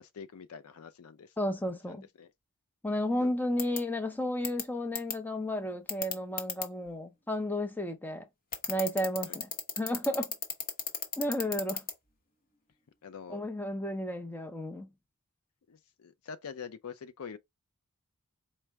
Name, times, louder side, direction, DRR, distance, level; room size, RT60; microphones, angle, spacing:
voice 1, 0.0-1.3 1.9-2.3 3.1-3.3 9.2-9.4 13.0-13.4 15.7-17.4, left 6 dB, 80° left, 0.5 m, -45 dB
voice 2, 1.4-2.0 2.8-8.3 8.7-9.5 9.8-10.3 11.2-11.8 13.3-14.9, left 1 dB, 10° left, 0.6 m, -32 dB
sound 1, 3.6-3.8 4.4-4.6 4.9-5.1 5.9-6.6 8.5-11.9, left 5 dB, 40° left, 0.9 m, -33 dB
4.4 x 2.1 x 3.4 m
head